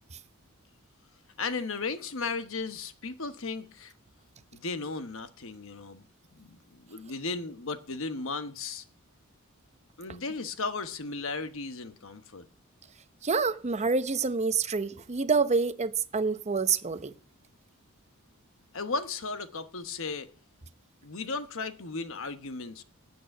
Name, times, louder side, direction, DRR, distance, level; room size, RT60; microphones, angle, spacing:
voice 1, 1.4-3.9 4.5-6.0 6.3-8.8 10.0-12.5 18.7-20.3 21.0-22.8, left 4 dB, 65° left, 1.2 m, -35 dB
voice 2, 13.2-17.1, right 4 dB, 30° right, 0.7 m, -27 dB
9.2 x 8.5 x 9.0 m
head